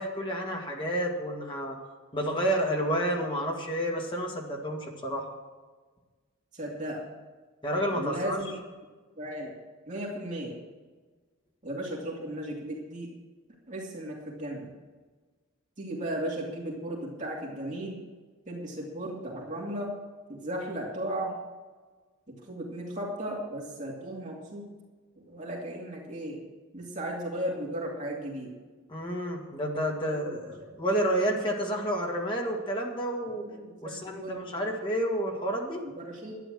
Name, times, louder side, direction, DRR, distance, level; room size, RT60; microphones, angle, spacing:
voice 1, 0.0-1.8 2.1-5.3 7.6-8.4 28.9-30.4 30.8-33.5 33.8-35.8, equal, 25° left, 0 dB, 2.2 m, -30 dB
voice 2, 6.5-7.0 7.9-8.5 9.2-9.5 9.9-10.5 11.6-13.1 13.7-14.7 15.8-18.0 18.5-19.9 20.3-21.4 22.3-24.7 25.2-26.4 26.7-28.5 30.1-30.7 33.4-34.6 35.8-36.4, right 1 dB, 35° right, -3 dB, 2.5 m, -36 dB
12.0 x 9.9 x 6.3 m, 1.4 s
head